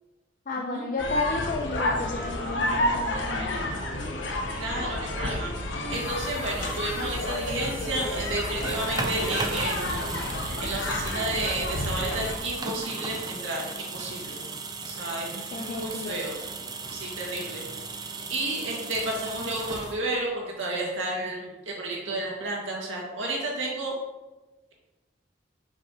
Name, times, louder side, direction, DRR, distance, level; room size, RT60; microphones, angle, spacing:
voice 1, 0.5-3.9 4.7-4.9 15.5-16.2, left 3 dB, 45° left, -1 dB, 0.5 m, -32 dB
sound 1, 1.0-12.4, left 1 dB, 70° left, 0.9 m, -30 dB
voice 2, 4.5-5.5 5.9-10.1 10.6-14.4 14.9-16.3 16.9-17.6 18.3-23.9, right 2 dB, 80° right, -3 dB, 2.0 m, -32 dB
sound 2, 5.9-19.9, equal, 5° right, 2.2 m, -47 dB
sound 3, 8.4-20.3, right 4 dB, 20° right, 0.4 m, -36 dB
7.4 x 5.9 x 3.0 m, 1.1 s
head